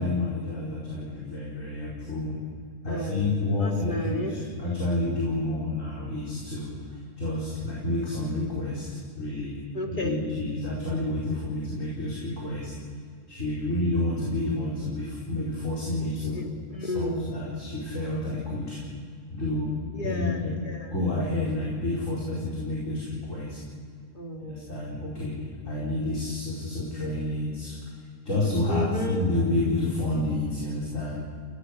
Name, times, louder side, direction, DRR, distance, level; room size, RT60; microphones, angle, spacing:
voice 1, 0.0-2.4 2.8-9.6 9.9-12.7 13.3-16.4 16.8-18.8 19.4-19.7 20.0-20.5 20.9-23.6 24.4-25.4 25.6-27.8 28.2-31.2, left 2 dB, 60° left, -6 dB, 5.0 m, -29 dB
voice 2, 2.9-4.4 9.7-10.3 16.0-17.4 19.9-20.9 24.1-24.8 28.7-29.3, left 1 dB, 35° left, 2 dB, 2.5 m, -33 dB
30.0 x 18.5 x 6.5 m, 2.2 s
omnidirectional pair, 1.5 m